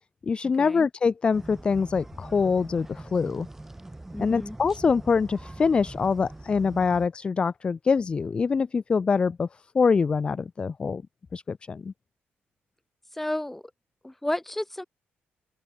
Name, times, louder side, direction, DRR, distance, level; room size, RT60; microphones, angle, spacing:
voice 1, 0.2-3.5 4.2-9.5 9.7-11.0 11.3-11.9, left 5 dB, 25° left, 0.3 m, -24 dB
sound 1, 1.3-7.1, right 2 dB, 10° right, 0.8 m, -43 dB
voice 2, 4.1-4.6 13.1-13.6 14.0-14.8, left 1 dB, 5° left, 1.2 m, -32 dB
open air
cardioid pair, 145°, 4 cm